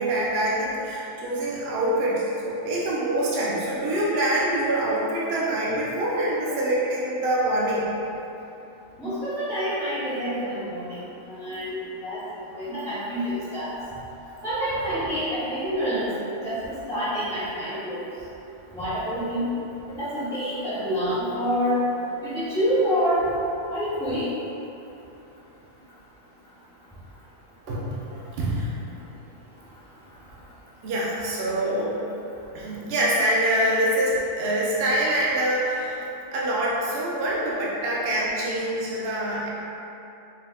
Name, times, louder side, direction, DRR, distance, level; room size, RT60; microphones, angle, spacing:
voice 1, 0.0-7.9 12.5-12.8 27.7-28.8 30.8-32.0 32.5-36.0 36.3-39.5, right 1 dB, 60° right, -6 dB, 0.7 m, -25 dB
voice 2, 9.0-11.0 11.3-12.2 12.6-13.7 14.4-16.1 16.4-18.0 18.7-19.4 19.9-21.8 22.2-24.3, equal, 5° left, -14 dB, 0.4 m, -27 dB
4.4 x 2.1 x 3.5 m, 2.9 s
omnidirectional pair, 1.4 m